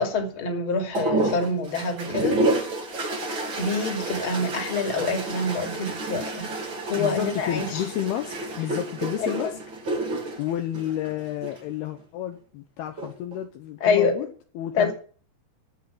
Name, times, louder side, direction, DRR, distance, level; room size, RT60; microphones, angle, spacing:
voice 1, 0.0-2.7 3.6-6.5 6.8-7.8 9.2-9.5 13.8-14.2 14.7-14.9, left 3 dB, 35° left, 2.9 m, -26 dB
sound 1, 0.9-11.6 12.8-13.4, right 2 dB, 35° right, 2.5 m, -29 dB
voice 2, 7.0-9.6 10.4-14.3 14.6-14.9, left 11 dB, 75° left, 2.7 m, -30 dB
14.0 x 5.6 x 9.6 m
omnidirectional pair, 4.9 m